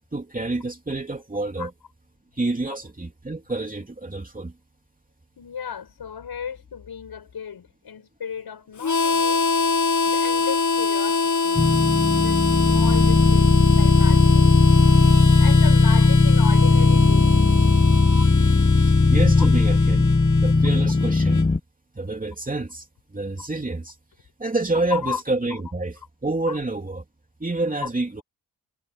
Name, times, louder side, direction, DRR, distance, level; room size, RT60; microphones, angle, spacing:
voice 1, 0.1-1.7 2.3-4.5 19.1-20.1 20.4-21.4 21.9-24.0 24.4-27.0 27.4-28.2, right 2 dB, 20° right, 3.0 m, -28 dB
voice 2, 5.4-9.5 10.0-11.7 12.2-14.9 15.4-17.4 19.4-19.5 23.4-23.5 24.9-25.2 26.0-26.1 26.5-26.6 27.8-27.9, left 7 dB, 80° left, 7.4 m, -35 dB
Harmonica, 8.8-21.5, left 4 dB, 50° left, 1.2 m, -25 dB
sound 1, 11.6-21.6, left 3 dB, 20° left, 0.9 m, -17 dB
wide cardioid pair, 95°, 37 cm